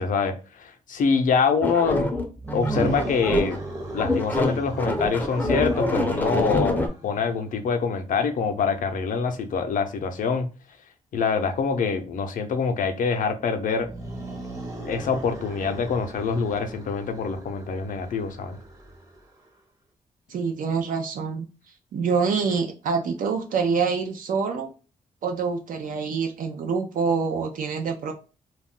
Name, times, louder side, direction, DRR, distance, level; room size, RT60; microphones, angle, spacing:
voice 1, 0.0-2.1 2.5-3.6 3.9-10.5 11.1-13.9 14.9-18.6, left 5 dB, 70° left, 0.5 m, -25 dB
sound 1, 1.6-3.7 4.0-6.9, left 1 dB, 10° left, 0.5 m, -25 dB
sound 2, 2.3-7.5 13.7-19.4, right 2 dB, 25° right, 0.7 m, -37 dB
voice 2, 20.3-21.5 21.9-24.7 25.2-28.1, right 5 dB, 75° right, 0.5 m, -26 dB
2.3 x 2.1 x 3.5 m
wide cardioid pair, 140°, 14 cm